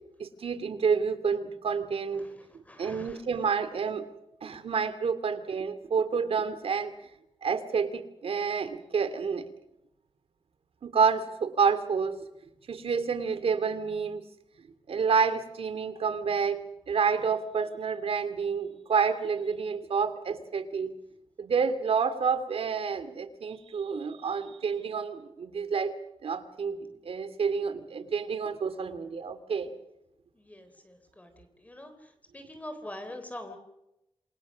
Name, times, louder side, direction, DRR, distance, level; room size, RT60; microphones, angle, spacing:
voice 1, 0.2-2.3 2.5-4.1 4.4-6.9 7.4-9.5 10.8-12.2 12.7-14.3 14.9-20.9 21.4-29.7, right 6 dB, 80° right, 11 dB, 2.5 m, -29 dB
voice 2, 2.7-3.2 30.4-31.3 31.6-31.9 32.3-33.6, left 1 dB, 15° left, 7 dB, 3.5 m, -43 dB
27.5 x 24.5 x 6.3 m, 0.88 s
wide cardioid pair, 175°, 10 cm